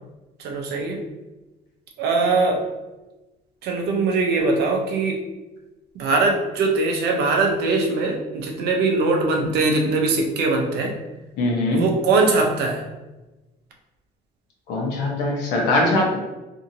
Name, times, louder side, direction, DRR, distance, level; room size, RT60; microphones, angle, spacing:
voice 1, 0.4-1.0 2.0-2.6 3.6-5.2 6.0-11.0 11.7-12.8, right 3 dB, 75° right, 2 dB, 0.6 m, -21 dB
voice 2, 11.4-11.8 14.7-16.2, left 2 dB, 90° left, -1 dB, 0.8 m, -21 dB
2.7 x 2.7 x 2.7 m, 1.1 s
cardioid pair, 110°, 17 cm